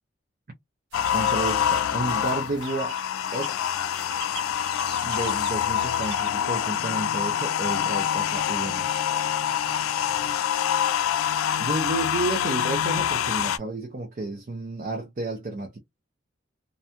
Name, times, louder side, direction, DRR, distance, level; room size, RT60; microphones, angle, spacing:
sound 1, 0.9-13.6, left 9 dB, 90° left, 0.3 m, -26 dB
sound 2, 0.9-6.6, right 6 dB, 60° right, 0.9 m, -44 dB
voice 1, 1.1-3.0 3.3-3.9 5.0-9.1 11.6-15.8, right 2 dB, 40° right, 0.5 m, -31 dB
2.6 x 2.2 x 2.7 m
head